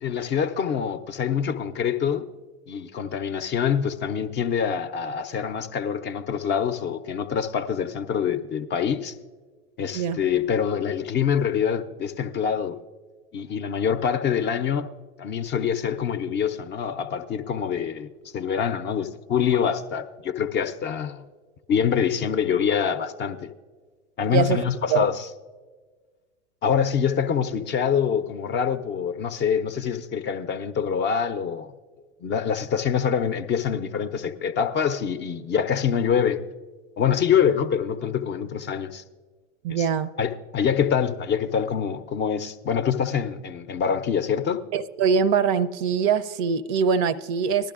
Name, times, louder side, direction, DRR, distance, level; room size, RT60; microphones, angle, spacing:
voice 1, 0.0-2.2 2.7-9.1 9.8-12.8 13.3-14.9 15.2-21.3 21.7-23.5 24.2-25.3 26.6-31.7 32.2-36.4 37.0-39.0 39.7-39.9 40.2-44.6, left 7 dB, 30° left, 0.6 m, -25 dB
voice 2, 39.6-40.1 44.7-47.7, right 6 dB, 45° right, 0.5 m, -23 dB
19.0 x 12.0 x 2.4 m
hypercardioid pair, 90°, 38 cm